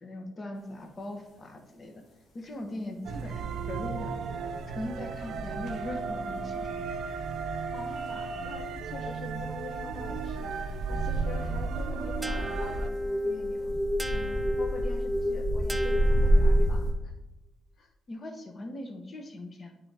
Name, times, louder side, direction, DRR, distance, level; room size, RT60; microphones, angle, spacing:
voice 1, 0.0-1.9 2.3-4.3 4.7-7.0 11.5-11.6 18.1-19.8, left 1 dB, 35° left, 5 dB, 0.9 m, -40 dB
sound 1, 0.8-0.9 3.7-3.8 10.0-16.9, right 1 dB, 85° left, 1.6 m, -28 dB
sound 2, 3.0-12.9, right 4 dB, 70° right, 0.5 m, -34 dB
voice 2, 7.7-10.6 10.9-13.7 14.1-17.1 17.8-17.9, left 4 dB, 65° left, 3 dB, 0.6 m, -45 dB
sound 3, 12.2-17.0, left 1 dB, 10° right, 0.4 m, -32 dB
8.9 x 3.8 x 3.3 m, 1.0 s
cardioid pair, 90°, 0 cm